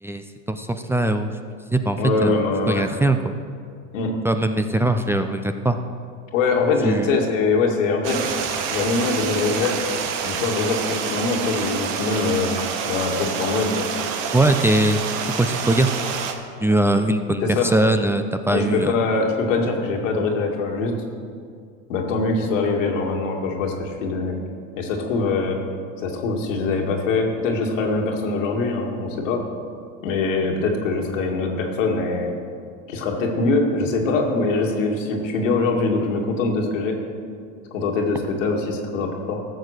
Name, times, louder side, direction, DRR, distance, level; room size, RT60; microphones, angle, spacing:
voice 1, 0.0-2.4 2.7-3.4 4.2-5.8 6.8-7.1 14.3-15.0 15.3-15.9 16.6-19.0, right 1 dB, 5° right, 7 dB, 0.5 m, -21 dB
voice 2, 2.0-2.9 3.9-4.2 6.3-8.3 8.7-9.7 10.2-12.5 12.8-13.9 17.4-17.7 18.5-20.9 21.9-24.4 24.8-25.6 26.0-29.4 30.0-32.4 32.9-37.0 37.7-39.4, left 3 dB, 90° left, 1 dB, 2.1 m, -23 dB
Stream, 8.0-16.3, right 6 dB, 55° right, 1.4 m, -27 dB
14.0 x 7.2 x 6.6 m, 2.2 s
supercardioid pair, 105°, 37 cm